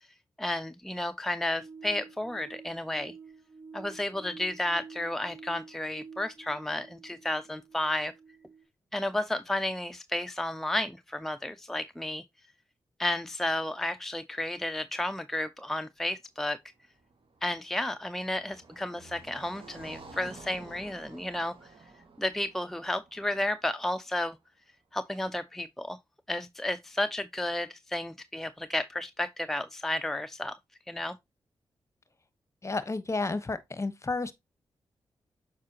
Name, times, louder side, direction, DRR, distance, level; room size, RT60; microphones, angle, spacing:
voice 1, 0.4-3.1 3.7-8.1 8.9-12.2 13.0-16.6 17.4-21.5 22.2-24.4 24.9-26.0 26.3-30.5 30.9-31.2, left 1 dB, 5° left, 0.5 m, -32 dB
sound 1, 1.6-8.6, right 5 dB, 15° right, 4.4 m, -50 dB
Car passing by, 16.8-24.0, right 3 dB, 65° right, 1.9 m, -51 dB
voice 2, 32.6-34.3, left 3 dB, 30° left, 1.0 m, -31 dB
7.3 x 4.8 x 2.9 m
supercardioid pair, 45°, 10 cm